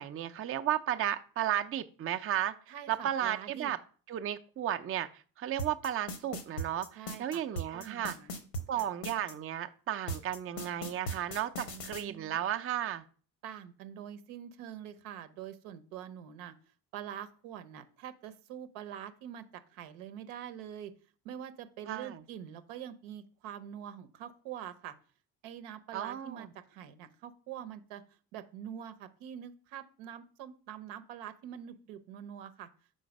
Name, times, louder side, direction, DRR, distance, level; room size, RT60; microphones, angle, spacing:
voice 1, 0.0-2.5 2.9-3.8 4.1-8.2 8.7-13.0 21.8-22.2 25.9-26.5, right 11 dB, 30° right, 8 dB, 0.5 m, -34 dB
voice 2, 2.7-3.7 6.9-7.4 7.7-8.3 8.8-8.9 11.6-12.4 13.4-16.5 16.9-20.9 21.2-24.9 25.4-28.0 28.3-32.7, right 9 dB, 75° right, 10 dB, 0.8 m, -45 dB
sound 1, 5.6-9.3 10.1-12.0, right 1 dB, 85° left, 1.0 m, -38 dB
5.1 x 3.9 x 5.2 m, 0.41 s
hypercardioid pair, 55°, 48 cm